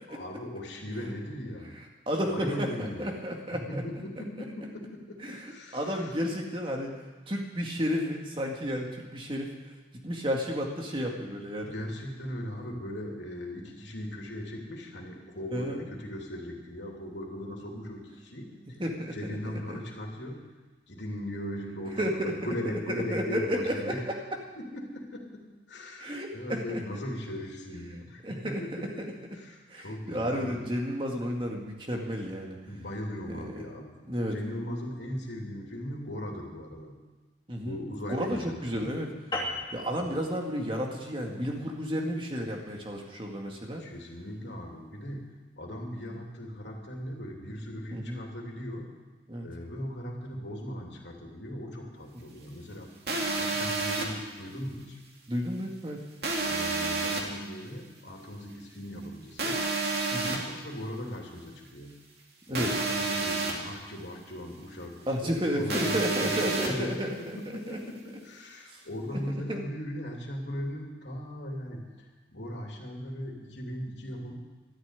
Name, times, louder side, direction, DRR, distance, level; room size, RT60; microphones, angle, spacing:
voice 1, 0.1-1.8 2.3-3.1 3.5-6.2 11.6-18.8 19.1-20.4 20.9-24.2 24.6-30.6 32.7-36.9 37.6-38.9 39.9-40.3 43.8-45.3 45.6-48.9 49.4-55.0 56.4-59.6 60.3-61.9 62.5-74.3, left 1 dB, 75° left, 0 dB, 3.0 m, -38 dB
voice 2, 2.1-3.8 5.2-6.9 7.3-9.5 10.0-11.7 15.5-15.8 18.8-19.2 19.4-19.8 22.0-22.3 22.9-24.0 26.0-26.8 28.2-29.1 29.7-32.6 33.3-33.6 34.1-34.4 37.5-37.8 38.1-39.1 39.7-43.8 47.9-48.2 49.3-49.5 55.3-56.0 60.1-60.4 62.5-62.7 65.1-67.1 67.7-67.8 69.1-69.2 69.5-69.6, equal, 30° right, 0 dB, 2.1 m, -32 dB
sound 1, 39.3-44.1, left 1 dB, 25° left, 2.9 m, -39 dB
sound 2, 53.1-54.1 56.2-57.2 59.4-60.4 62.5-63.5 65.7-66.7, right 3 dB, 60° right, 2.5 m, -29 dB
13.0 x 10.5 x 9.6 m, 1.2 s
head